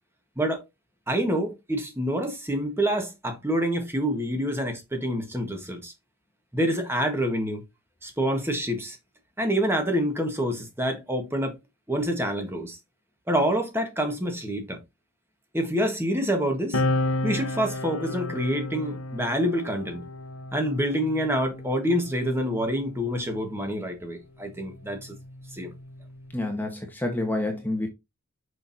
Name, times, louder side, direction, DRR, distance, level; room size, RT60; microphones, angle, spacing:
voice 1, 1.1-5.9 6.5-7.6 8.0-9.0 9.4-11.6 11.9-12.8 13.3-14.8 15.5-16.8 17.2-20.0 20.5-25.1 25.5-25.7, equal, 10° right, 1.4 m, -27 dB
sound 1, 16.7-23.7 24.6-26.5, left 2 dB, 70° left, 1.2 m, -33 dB
voice 2, 26.3-27.9, left 2 dB, 10° left, 1.2 m, -28 dB
6.6 x 6.2 x 2.7 m
head